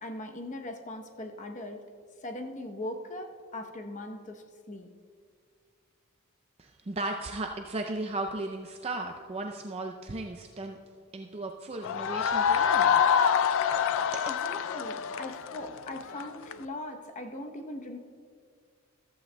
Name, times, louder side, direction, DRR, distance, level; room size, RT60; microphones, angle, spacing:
voice 1, 0.0-1.8 2.2-4.9 14.3-18.0, left 1 dB, 35° left, 4 dB, 0.8 m, -40 dB
voice 2, 6.6-10.8 11.1-13.0 14.1-14.2, right 2 dB, 30° right, 3 dB, 0.4 m, -36 dB
sound 1, 11.8-16.6, left 7 dB, 60° left, 0.4 m, -26 dB
14.0 x 14.0 x 2.2 m, 2.1 s
head